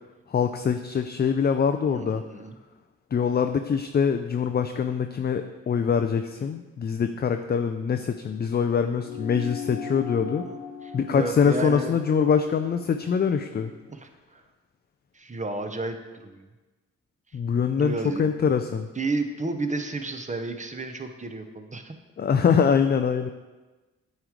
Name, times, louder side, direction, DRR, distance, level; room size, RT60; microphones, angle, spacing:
voice 1, 0.3-2.2 3.1-10.5 10.9-13.7 17.3-18.9 22.2-23.3, left 6 dB, 30° left, 7 dB, 0.4 m, -24 dB
voice 2, 1.9-2.6 8.4-8.5 8.8-9.0 10.4-12.0 13.9-14.4 15.1-16.5 17.8-18.3 19.0-21.9, right 3 dB, 20° right, 6 dB, 0.8 m, -32 dB
sound 1, 9.0-13.8, left 6 dB, 85° left, 0.9 m, -39 dB
8.8 x 3.2 x 5.0 m, 1.2 s
cardioid pair, 55°, 33 cm